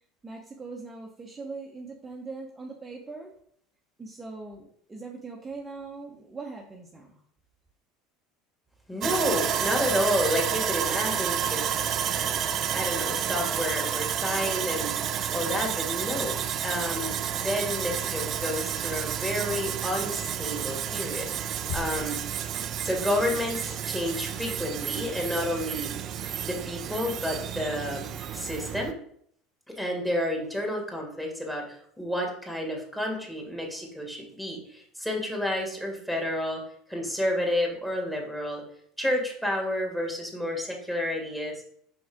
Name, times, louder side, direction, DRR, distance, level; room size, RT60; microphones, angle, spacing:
voice 1, 0.2-3.3 4.0-7.2, right 3 dB, 20° right, -1 dB, 1.2 m, -41 dB
voice 2, 8.9-11.8 12.7-15.0 15.3-16.4 16.6-22.2 22.8-25.9 26.4-28.9 29.7-36.6 36.9-38.6 39.0-41.6, left 1 dB, 5° left, 0 dB, 2.5 m, -30 dB
Sawing, 9.0-28.9, right 9 dB, 45° right, 0.6 m, -30 dB
sound 1, 21.7-23.1, left 7 dB, 40° left, 1.3 m, -39 dB
6.0 x 5.7 x 3.7 m, 0.66 s
figure-of-eight pair, 70°, 0 cm